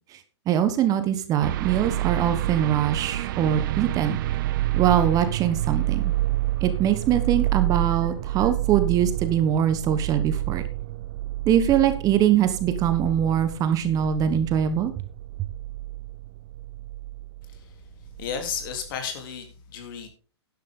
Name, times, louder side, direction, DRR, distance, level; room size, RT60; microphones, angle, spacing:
voice 1, 0.5-4.2 4.7-6.1 6.6-10.6 11.5-14.9, right 10 dB, 25° right, 10 dB, 1.2 m, -22 dB
sound 1, 1.4-17.6 18.0-18.9, right 16 dB, 45° right, 0.6 m, -29 dB
voice 2, 18.2-20.1, left 7 dB, 50° left, 5 dB, 3.5 m, -33 dB
12.0 x 10.5 x 3.8 m, 0.36 s
hypercardioid pair, 125°, 15 cm